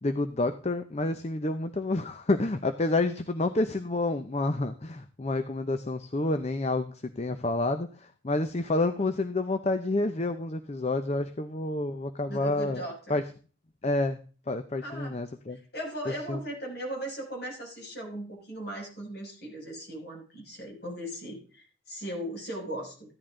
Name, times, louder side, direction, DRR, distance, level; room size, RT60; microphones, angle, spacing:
voice 1, 0.0-12.8 13.1-13.2 13.8-14.2 14.5-15.6 16.3-16.4, left 2 dB, 35° left, 9 dB, 0.6 m, -29 dB
voice 2, 12.3-13.2 14.8-15.2 15.5-23.1, right 1 dB, 55° left, -1 dB, 6.1 m, -38 dB
15.0 x 11.0 x 3.8 m, 0.39 s
head